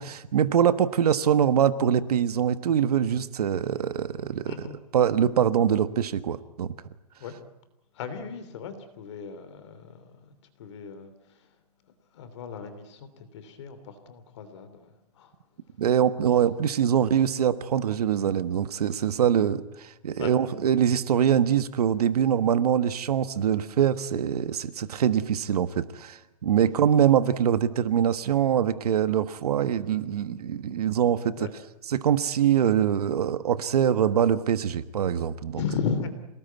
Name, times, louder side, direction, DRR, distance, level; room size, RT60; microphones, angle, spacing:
voice 1, 0.0-6.7 15.8-31.5 31.9-35.6, right 9 dB, 70° right, 12 dB, 1.4 m, -24 dB
voice 2, 7.9-10.3 10.6-11.1 12.1-14.9 15.2-15.3 20.2-20.3 26.6-26.7 31.4-31.5 35.6-36.1, left 6 dB, 45° left, 10 dB, 3.1 m, -35 dB
27.0 x 19.0 x 9.3 m, 0.93 s
hypercardioid pair, 175°, 20 cm